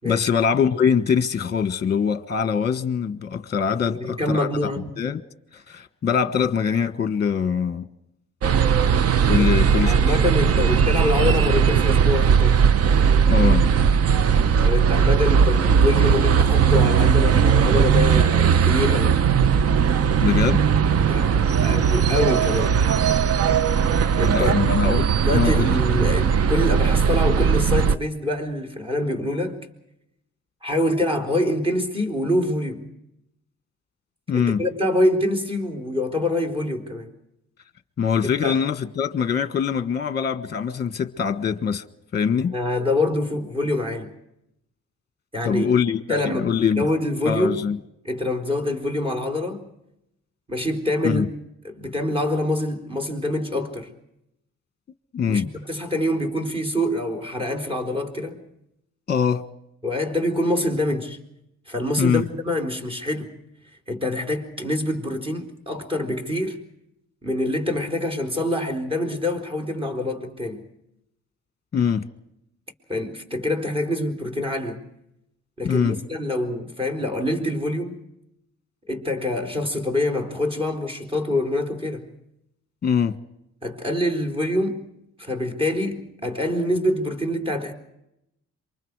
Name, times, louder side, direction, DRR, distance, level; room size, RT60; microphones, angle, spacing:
voice 1, 0.0-4.7 5.0-5.2 5.5-7.8 9.3-9.9 13.3-13.6 20.2-20.6 24.3-25.7 34.3-34.6 38.0-41.8 42.1-42.5 45.4-46.8 47.2-47.8 51.0-51.2 55.1-55.5 59.1-59.4 62.0-62.2 71.7-72.1 75.6-76.0 82.8-83.1, left 7 dB, 35° left, 1.3 m, -23 dB
voice 2, 3.9-4.8 9.4-9.5 9.8-12.6 14.6-19.2 21.1-22.8 24.2-24.6 25.2-29.6 30.6-32.8 34.3-37.1 38.4-38.6 42.5-44.1 45.3-45.7 46.1-47.7 48.0-49.7 50.5-51.3 51.6-53.9 55.3-58.4 59.8-61.2 61.7-63.3 63.9-66.6 67.2-70.6 72.9-74.8 75.6-78.0 78.9-82.1 83.6-84.9 85.2-87.7, left 1 dB, 20° right, 4.0 m, -25 dB
sound 1, 8.4-28.0, right 7 dB, 55° right, 0.8 m, -18 dB
27.5 x 24.5 x 4.8 m
cardioid pair, 90°, 30 cm